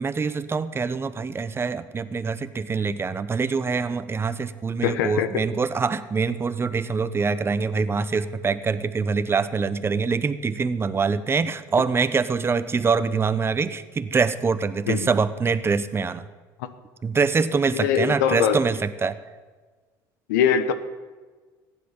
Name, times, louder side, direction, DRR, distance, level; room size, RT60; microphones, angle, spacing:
voice 1, 0.0-16.2 17.0-19.2, right 5 dB, 25° right, 12 dB, 1.0 m, -24 dB
voice 2, 4.8-5.4 14.9-15.0 16.6-16.7 17.7-18.6 20.3-20.7, left 8 dB, 85° left, 11 dB, 1.1 m, -22 dB
15.0 x 10.5 x 7.3 m, 1.4 s
supercardioid pair, 80°, 9 cm